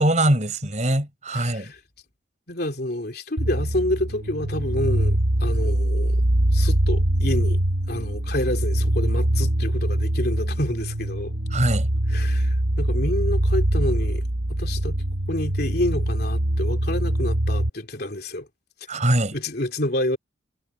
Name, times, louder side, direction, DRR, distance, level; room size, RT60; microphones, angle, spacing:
voice 1, 0.0-1.7 11.5-11.9 18.9-19.4, right 1 dB, 40° right, 4.9 m, -22 dB
voice 2, 1.3-1.8 2.5-6.2 6.5-7.6 7.9-11.3 12.1-14.2 14.5-15.0 15.3-18.5 19.3-20.2, left 1 dB, 55° left, 3.4 m, -28 dB
sound 1, 3.4-17.7, right 1 dB, 70° right, 1.3 m, -23 dB
head